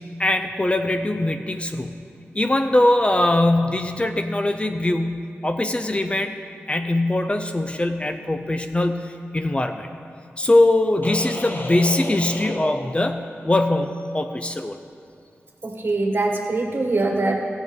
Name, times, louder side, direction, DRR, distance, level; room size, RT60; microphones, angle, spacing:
voice 1, 0.0-2.0 2.3-6.3 6.7-9.9 10.4-14.8, left 1 dB, 25° left, 7 dB, 0.6 m, -22 dB
sound 1, 11.0-13.7, left 2 dB, 40° left, 0.9 m, -33 dB
voice 2, 15.6-17.3, right 2 dB, 50° right, 1 dB, 1.7 m, -23 dB
14.5 x 7.8 x 5.3 m, 2.4 s
wide cardioid pair, 65°, 5 cm